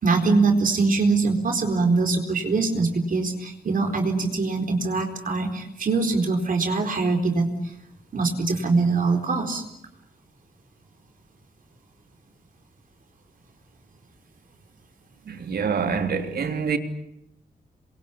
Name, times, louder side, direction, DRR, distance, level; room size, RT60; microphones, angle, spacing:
voice 1, 0.0-7.5 8.1-9.6, right 3 dB, 60° right, 4.2 m, -23 dB
voice 2, 15.3-16.8, right 6 dB, 80° right, 3.2 m, -26 dB
29.0 x 23.0 x 8.6 m
wide cardioid pair, 125°, 16 cm